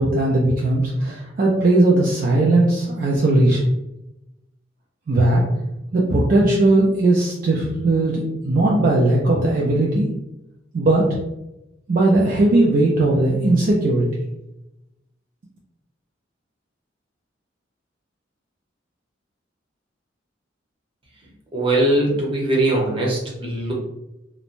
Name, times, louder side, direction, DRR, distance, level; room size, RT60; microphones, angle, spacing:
voice 1, 0.0-3.7 5.1-5.4 5.9-10.1 10.7-11.1 11.9-14.1, right 2 dB, 45° right, -3 dB, 0.4 m, -18 dB
voice 2, 21.5-23.7, right 1 dB, 30° right, -3 dB, 0.8 m, -20 dB
3.0 x 2.1 x 2.5 m, 0.91 s
head